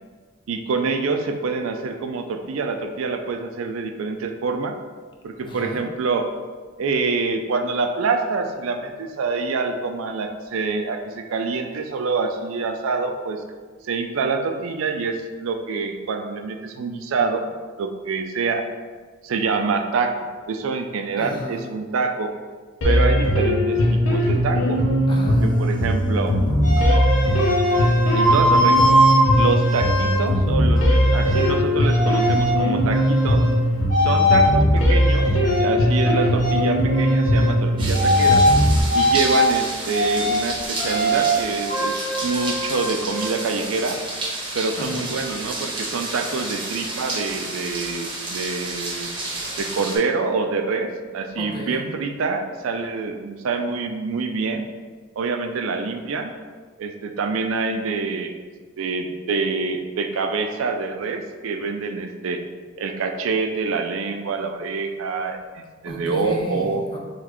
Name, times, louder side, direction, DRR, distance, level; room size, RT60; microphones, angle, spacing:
voice 1, 0.5-4.8 5.2-6.3 6.8-13.4 13.8-17.4 17.8-18.6 19.2-20.1 20.5-22.3 22.8-24.8 25.3-26.3 28.1-28.9 29.4-33.4 34.0-35.3 35.6-38.4 38.9-44.0 44.5-49.1 49.6-54.7 55.2-56.3 56.8-58.3 58.8-62.4 62.8-66.8, right 4 dB, 85° right, 5 dB, 0.4 m, -26 dB
voice 2, 5.4-5.8 21.2-21.7 25.1-27.0 44.8-45.1 51.4-51.8 65.8-67.0, left 1 dB, 25° left, -1 dB, 0.6 m, -33 dB
sound 1, 22.8-38.8, equal, 90° left, 0.8 m, -19 dB
sound 2, 26.6-30.2 30.7-31.5 31.8-32.6 32.9-33.5 33.9-34.5 34.9-36.1 36.4-36.6 36.9-37.5 37.9-38.5 38.9-39.4 39.9-40.4 40.8-41.4 41.7-43.3, equal, 40° left, 0.9 m, -21 dB
sound 3, 37.8-50.0, right 2 dB, 25° right, 0.8 m, -31 dB
4.0 x 3.2 x 3.0 m, 1.4 s
head